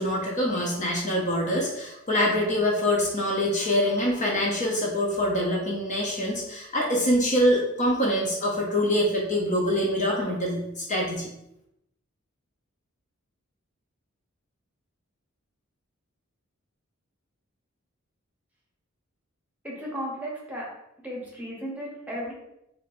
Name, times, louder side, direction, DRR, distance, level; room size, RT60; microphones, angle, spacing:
voice 1, 0.0-11.3, equal, 35° left, -2 dB, 0.6 m, -25 dB
voice 2, 19.6-20.7 21.0-22.3, equal, 5° right, -4 dB, 1.0 m, -34 dB
4.4 x 3.1 x 2.5 m, 0.83 s
head